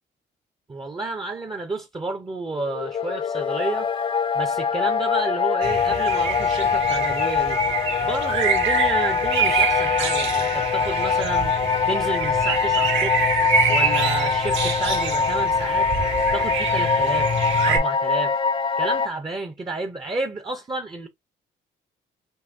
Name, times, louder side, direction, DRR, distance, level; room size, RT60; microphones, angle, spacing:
voice 1, 0.7-3.9 4.3-7.6 8.0-11.5 11.9-13.3 13.7-15.9 16.3-17.4 17.6-18.4 18.8-21.1, right 3 dB, 20° right, 0.6 m, -30 dB
sound 1, 2.6-19.1, left 6 dB, 25° left, 0.3 m, -23 dB
sound 2, 5.6-17.8, right 5 dB, 75° right, 1.7 m, -26 dB
5.3 x 2.2 x 2.7 m
cardioid pair, 90°, 20 cm